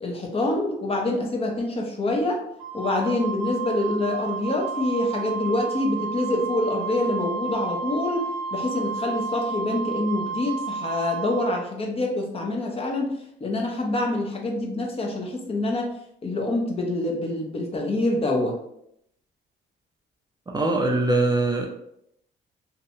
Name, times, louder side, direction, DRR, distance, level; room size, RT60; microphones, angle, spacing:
voice 1, 0.0-2.4 2.7-13.1 13.4-15.9 16.2-18.6, left 2 dB, 30° left, 1 dB, 0.6 m, -26 dB
Wind instrument woodwind instrument, 2.6-11.6, right 5 dB, 85° right, 0.5 m, -32 dB
voice 2, 20.5-21.7, right 2 dB, 20° right, 0 dB, 0.4 m, -22 dB
2.7 x 2.1 x 2.6 m, 0.75 s
cardioid pair, 90°, 20 cm